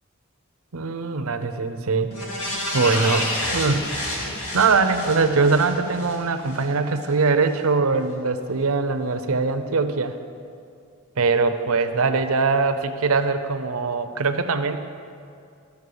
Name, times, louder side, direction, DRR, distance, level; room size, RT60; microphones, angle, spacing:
voice 1, 0.7-2.1 2.7-3.9 4.5-10.1 11.2-14.8, right 4 dB, 85° right, 9 dB, 0.7 m, -22 dB
sound 1, 2.1-6.6 7.0-7.1, left 1 dB, 80° left, 2.3 m, -29 dB
13.0 x 6.8 x 6.9 m, 2.4 s
head